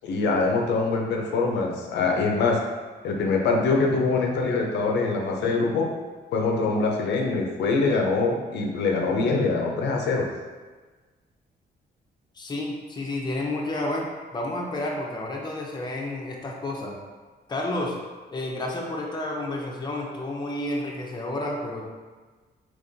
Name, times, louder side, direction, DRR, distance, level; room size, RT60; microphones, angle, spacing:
voice 1, 0.0-2.6 3.0-5.9 6.3-10.3, left 3 dB, 85° left, 1 dB, 0.5 m, -24 dB
voice 2, 12.3-16.9 17.5-18.0 18.3-21.8, left 1 dB, 25° left, -1 dB, 0.6 m, -30 dB
3.7 x 2.9 x 2.7 m, 1.4 s
cardioid pair, 110°, 17 cm